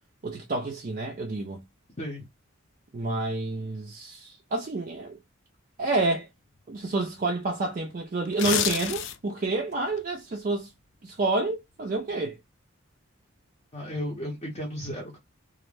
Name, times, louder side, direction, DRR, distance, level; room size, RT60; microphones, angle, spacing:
voice 1, 0.2-1.6 2.9-5.2 5.8-6.3 6.7-10.7 11.0-12.4, right 2 dB, 40° right, 0.4 m, -29 dB
sound 1, 8.2-9.4 9.8-10.0, left 9 dB, 55° left, 0.3 m, -28 dB
voice 2, 13.7-15.2, equal, 30° left, 0.7 m, -34 dB
2.4 x 2.1 x 3.1 m
head